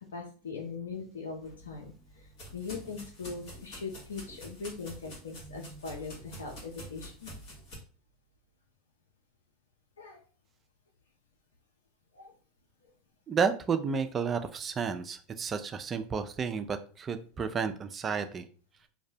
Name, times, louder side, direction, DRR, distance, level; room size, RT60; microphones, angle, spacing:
voice 1, 0.1-7.3 10.0-10.2 12.1-12.3, left 4 dB, 90° left, 1 dB, 0.4 m, -41 dB
sound 1, 1.4-7.8, equal, 60° left, 1.2 m, -47 dB
voice 2, 13.3-18.5, right 6 dB, 30° right, 8 dB, 0.3 m, -31 dB
2.6 x 2.0 x 2.7 m, 0.40 s
hypercardioid pair, 95°, 0 cm